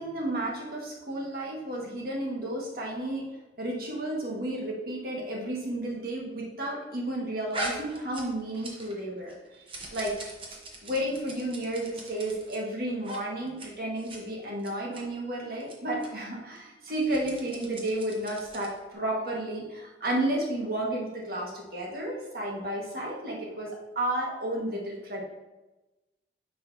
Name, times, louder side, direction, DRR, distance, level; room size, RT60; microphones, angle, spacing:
voice 1, 0.0-3.2 3.6-9.6 9.9-10.1 10.8-25.2, right 1 dB, 55° right, -2 dB, 1.7 m, -32 dB
sound 1, 7.5-9.0 9.3-12.6 13.0-13.2 13.5-13.7 14.0-14.2 14.6-15.0 15.6-15.7 16.0-16.1 16.9-18.8, right 2 dB, 30° right, 1.0 m, -40 dB
9.4 x 5.4 x 2.8 m, 1.1 s
head